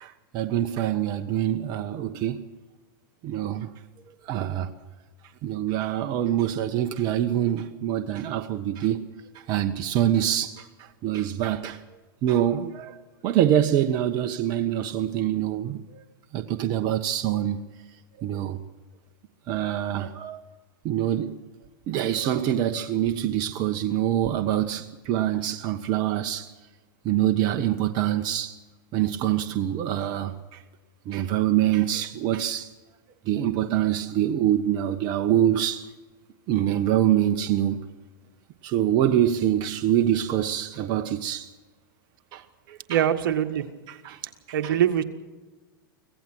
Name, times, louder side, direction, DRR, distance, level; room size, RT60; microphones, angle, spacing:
voice 1, 0.0-2.4 3.2-3.7 4.3-4.7 5.4-9.1 9.5-10.6 11.0-11.8 12.2-15.8 16.3-17.6 18.2-18.6 19.5-20.4 20.8-21.4 21.9-26.5 27.0-28.5 28.9-30.6 31.1-32.7 33.3-35.9 36.5-37.9 38.6-41.5 42.3-43.0 43.9-44.2 44.5-44.8, right 11 dB, 40° right, 1.2 m, -25 dB
voice 2, 42.9-43.6 44.5-45.0, right 10 dB, 70° right, 1.7 m, -23 dB
25.0 x 16.5 x 6.3 m
hypercardioid pair, 120°, 12 cm